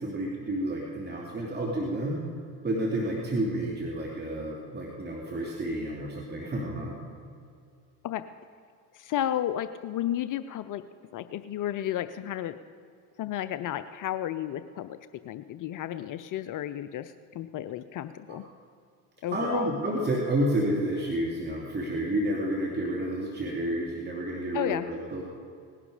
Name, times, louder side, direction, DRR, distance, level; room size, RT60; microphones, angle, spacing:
voice 1, 0.0-2.2 2.6-7.0 18.3-18.4 19.3-25.2, right 1 dB, 20° right, -2 dB, 2.7 m, -30 dB
voice 2, 8.9-10.8 11.1-12.6 13.2-15.0 15.2-18.4 19.2-19.7 24.5-24.9, left 11 dB, 45° left, 12 dB, 0.6 m, -32 dB
19.0 x 11.0 x 5.0 m, 2.4 s
hypercardioid pair, 80°, 47 cm